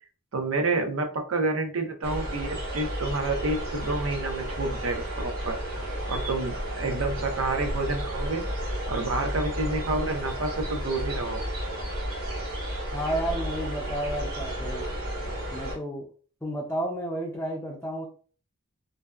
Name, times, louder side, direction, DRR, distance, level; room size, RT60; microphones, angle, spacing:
voice 1, 0.3-5.5 6.1-8.4 8.9-11.4, right 3 dB, 75° right, 5 dB, 0.5 m, -29 dB
sound 1, 2.0-15.7, equal, 50° right, 1.3 m, -32 dB
voice 2, 12.9-14.9 15.5-16.1 16.4-18.1, right 1 dB, 10° left, -2 dB, 0.4 m, -31 dB
2.6 x 2.1 x 2.3 m, 0.40 s
head